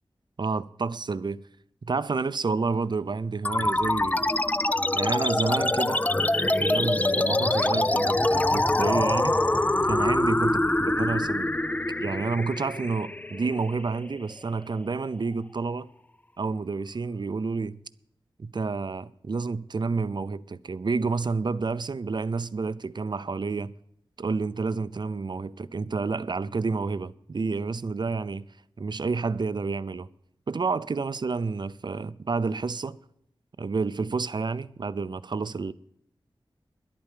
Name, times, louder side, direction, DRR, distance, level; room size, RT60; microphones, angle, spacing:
voice 1, 0.4-1.4 1.8-4.3 4.9-6.0 6.4-9.4 9.9-10.6 10.9-11.5 12.0-15.9 16.4-17.8 18.4-23.7 24.2-28.5 28.8-30.1 30.5-33.0 33.6-35.7, right 4 dB, 50° right, 0.5 m, -29 dB
sound 1, 3.4-14.4, left 2 dB, 15° left, 0.4 m, -25 dB
11.0 x 8.8 x 7.5 m
wide cardioid pair, 80°, 9 cm